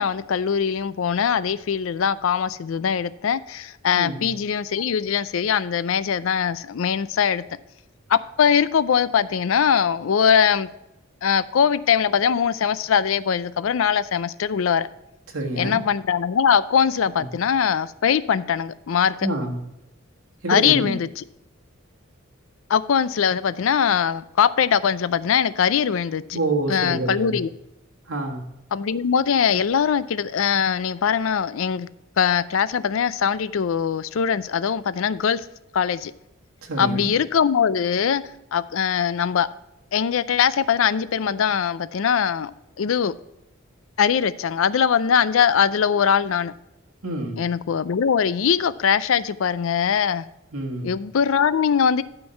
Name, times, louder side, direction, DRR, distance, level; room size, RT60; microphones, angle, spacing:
voice 1, 0.0-7.4 8.1-10.7 11.2-14.9 15.6-19.3 20.5-21.2 22.7-26.4 26.7-27.5 28.7-31.9 32.2-35.4 35.7-36.1 36.8-38.2 38.5-39.5 39.9-42.5 42.8-43.1 44.0-46.5 47.4-50.2 50.8-52.0, left 7 dB, 70° left, 0.4 m, -21 dB
voice 2, 15.3-15.8 19.2-19.6 20.4-21.0 26.3-27.4 28.1-28.4 36.6-37.1 47.0-47.4 50.5-50.9, right 2 dB, 85° right, 1.7 m, -27 dB
11.5 x 4.6 x 5.6 m
head